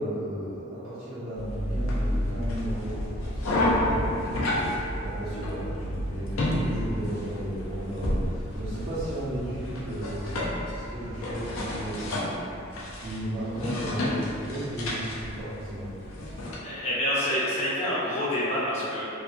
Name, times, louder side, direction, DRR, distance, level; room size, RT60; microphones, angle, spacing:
voice 1, 0.0-3.4 3.8-12.1 13.0-15.9, right 1 dB, 85° right, -13 dB, 0.8 m, -35 dB
sound 1, 1.3-16.6, left 1 dB, 80° left, 0.5 m, -30 dB
voice 2, 16.6-19.0, left 1 dB, 30° left, -9 dB, 0.5 m, -27 dB
2.7 x 2.2 x 2.5 m, 2.7 s
head